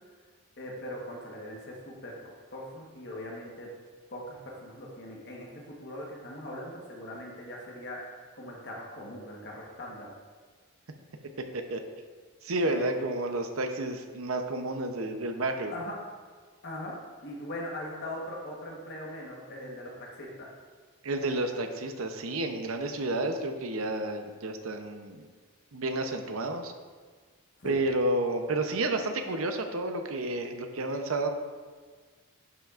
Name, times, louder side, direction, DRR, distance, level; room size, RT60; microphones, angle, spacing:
voice 1, 0.6-3.7 4.1-5.5 5.8-10.1 12.6-13.1 15.7-16.0 16.6-17.0 17.2-20.5 27.6-27.8, left 1 dB, 50° left, -2 dB, 1.3 m, -40 dB
voice 2, 12.4-15.7 21.0-25.3 25.7-26.7 27.6-31.3, right 2 dB, 75° right, 5 dB, 0.8 m, -31 dB
11.0 x 5.8 x 2.5 m, 1.5 s
head